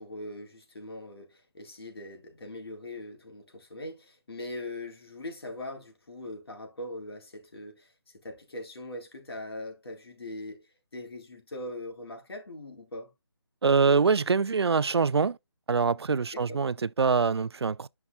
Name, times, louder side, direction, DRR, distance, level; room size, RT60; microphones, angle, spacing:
voice 1, 0.0-13.1 16.3-16.6, left 1 dB, 70° left, 4.1 m, -41 dB
voice 2, 13.6-15.4 15.7-17.9, right 5 dB, 85° right, 0.4 m, -24 dB
11.5 x 5.8 x 2.3 m
figure-of-eight pair, 155°, 13 cm